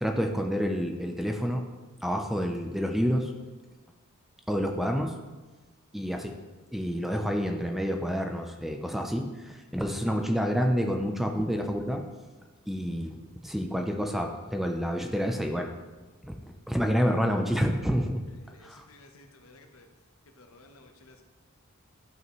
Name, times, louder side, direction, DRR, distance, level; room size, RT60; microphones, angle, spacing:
voice 1, 0.0-1.6 2.0-3.3 4.5-5.1 5.9-6.4 6.7-12.0 12.7-15.7 16.2-16.3 16.7-18.2 18.6-18.8, equal, ahead, 3 dB, 0.5 m, -28 dB
voice 2, 18.4-19.9 20.4-21.2, left 2 dB, 70° left, 4 dB, 1.0 m, -55 dB
12.0 x 5.6 x 3.1 m, 1.2 s
head